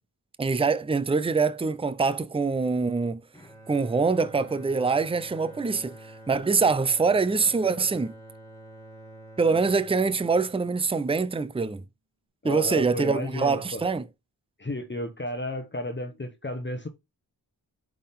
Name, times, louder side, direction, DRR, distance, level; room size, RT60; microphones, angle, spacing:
voice 1, 0.4-3.2 3.7-5.9 6.3-8.1 9.4-11.8 12.4-14.0, right 4 dB, 15° right, 0.6 m, -24 dB
Bowed string instrument, 3.3-11.6, right 1 dB, 10° left, 2.1 m, -48 dB
voice 2, 12.4-13.8 14.6-16.9, left 1 dB, 25° left, 1.1 m, -33 dB
8.5 x 3.7 x 3.6 m
cardioid pair, 55°, 41 cm